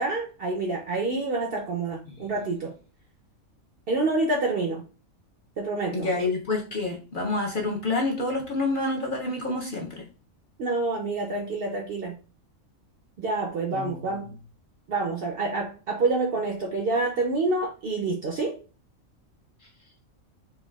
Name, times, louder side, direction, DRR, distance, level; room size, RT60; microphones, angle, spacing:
voice 1, 0.0-2.7 3.9-4.8 5.6-6.1 10.6-12.1 13.2-14.3 14.9-18.6, right 3 dB, 60° right, 0.6 m, -27 dB
voice 2, 5.9-10.0 13.7-14.1, left 2 dB, 50° left, 0.7 m, -28 dB
4.3 x 2.3 x 2.3 m
omnidirectional pair, 1.4 m